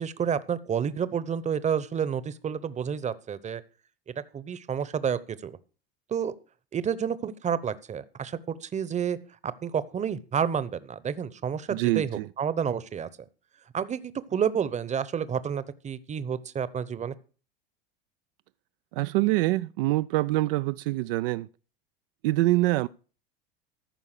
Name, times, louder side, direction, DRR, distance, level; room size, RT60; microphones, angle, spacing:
voice 1, 0.0-3.6 4.2-5.6 6.1-6.3 6.7-9.2 9.4-13.1 13.7-17.1, right 7 dB, 25° right, 0.9 m, -30 dB
voice 2, 11.7-12.3 18.9-21.5 22.2-22.9, right 18 dB, 65° right, 0.4 m, -25 dB
14.5 x 5.4 x 6.7 m
hypercardioid pair, 90°, 30 cm